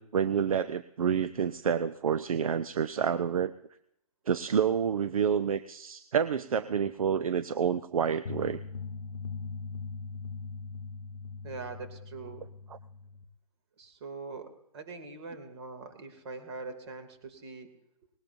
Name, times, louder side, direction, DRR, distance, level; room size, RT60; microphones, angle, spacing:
voice 1, 0.0-3.5 4.3-8.6, right 7 dB, 70° right, 13 dB, 0.7 m, -28 dB
sound 1, 8.3-13.2, left 4 dB, 85° left, 0.9 m, -40 dB
voice 2, 11.4-12.5 13.8-17.7, right 4 dB, 45° right, 6 dB, 2.7 m, -43 dB
20.0 x 18.5 x 2.7 m, 0.76 s
hypercardioid pair, 150°, 19 cm